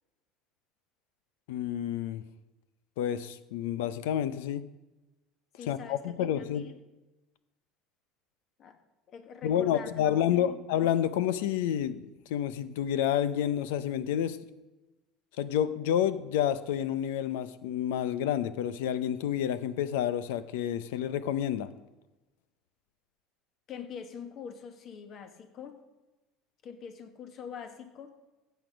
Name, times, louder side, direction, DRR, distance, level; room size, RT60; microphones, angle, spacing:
voice 1, 1.5-2.2 3.0-4.6 5.7-6.6 9.4-14.4 15.4-21.7, left 10 dB, 90° left, 14 dB, 0.8 m, -29 dB
voice 2, 5.6-6.8 8.6-8.8 9.1-9.9 10.3-10.6 23.7-25.8 26.6-28.1, left 7 dB, 45° left, 7 dB, 1.6 m, -44 dB
15.5 x 8.2 x 5.2 m, 1.0 s
supercardioid pair, 130°, 0 cm